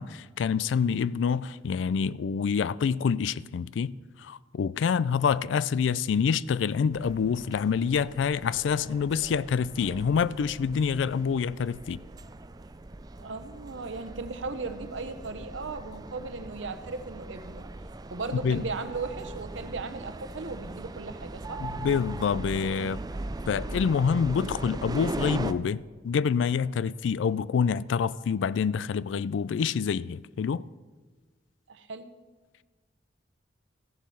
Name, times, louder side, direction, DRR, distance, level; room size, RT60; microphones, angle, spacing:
voice 1, 0.0-12.0 18.3-18.6 21.6-23.0 23.5-30.7, left 6 dB, 80° left, 0.3 m, -27 dB
sound 1, 6.9-25.5, right 2 dB, 20° right, 0.4 m, -39 dB
voice 2, 13.2-17.7 18.1-21.7 31.7-32.1, right 3 dB, 90° right, 0.9 m, -37 dB
15.0 x 7.4 x 5.5 m
head